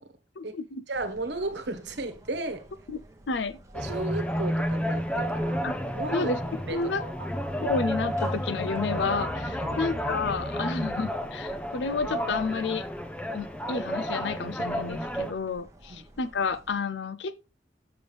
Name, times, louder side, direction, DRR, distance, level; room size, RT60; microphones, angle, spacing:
voice 1, 0.4-0.8 2.9-3.0 3.3-3.6 5.6-5.7 6.1-6.4 6.7-7.0 7.6-12.8 13.3-17.5, left 4 dB, 80° left, 0.6 m, -30 dB
sound 1, 0.9-16.8, right 1 dB, 20° right, 1.0 m, -51 dB
voice 2, 0.9-2.6 3.7-5.6 5.9-6.3 6.6-7.3 9.6-9.8 15.9-16.0, right 2 dB, 70° right, 1.2 m, -34 dB
sound 2, 3.7-15.3, equal, 5° left, 0.6 m, -31 dB
7.0 x 6.7 x 3.3 m
head